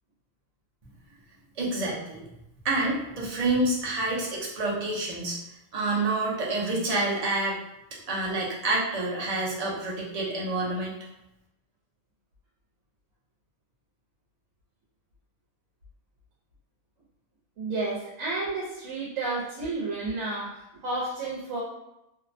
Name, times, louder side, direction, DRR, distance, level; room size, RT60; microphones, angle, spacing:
voice 1, 1.6-2.2 2.6-5.4 5.7-7.5 8.1-10.9, right 2 dB, 45° right, -4 dB, 0.5 m, -28 dB
voice 2, 17.6-21.6, right 3 dB, 90° right, -5 dB, 1.0 m, -31 dB
2.6 x 2.1 x 2.5 m, 0.91 s
omnidirectional pair, 1.3 m